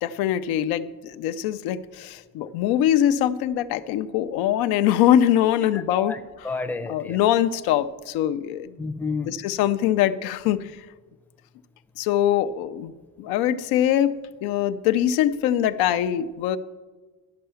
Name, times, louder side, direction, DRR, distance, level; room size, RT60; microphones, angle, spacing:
voice 1, 0.0-6.1 6.9-8.7 9.3-10.7 12.0-12.9 13.2-14.1 14.4-16.6, left 11 dB, 85° left, 11 dB, 0.6 m, -22 dB
voice 2, 5.7-7.2 8.8-9.4, left 3 dB, 5° left, 7 dB, 0.5 m, -31 dB
11.5 x 5.6 x 6.9 m, 1.3 s
cardioid pair, 115°, 36 cm